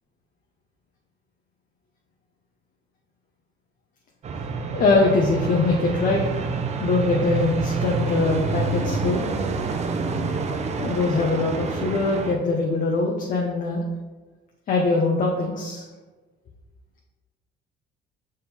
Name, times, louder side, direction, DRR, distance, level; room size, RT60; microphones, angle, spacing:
sound 1, 4.2-12.3, right 4 dB, 40° right, 0.7 m, -27 dB
voice 1, 4.7-6.2 6.8-9.2 10.8-13.8 14.7-15.8, left 3 dB, 50° left, -1 dB, 1.0 m, -22 dB
6.3 x 3.8 x 4.3 m, 1.2 s
cardioid pair, 110°, 17 cm